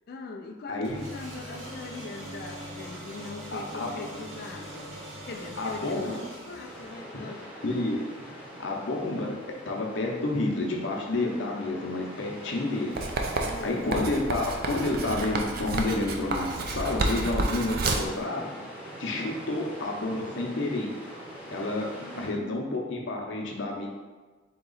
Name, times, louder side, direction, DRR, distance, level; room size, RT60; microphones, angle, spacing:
voice 1, 0.1-5.0 5.3-7.5 13.4-13.9 22.0-22.6, left 3 dB, 50° left, 4 dB, 0.3 m, -41 dB
sound 1, 0.8-7.4, equal, 70° right, 1.0 m, -41 dB
voice 2, 3.5-3.9 5.6-6.1 7.6-8.0 8.3-9.4 9.7-18.4 19.0-20.9 21.5-21.9 22.2-23.9, left 2 dB, 65° left, -1 dB, 0.7 m, -30 dB
sound 2, 6.6-22.3, equal, 10° right, 0.8 m, -43 dB
Writing, 13.0-18.2, right 2 dB, 45° right, 0.4 m, -30 dB
3.8 x 2.9 x 3.9 m, 1.3 s
head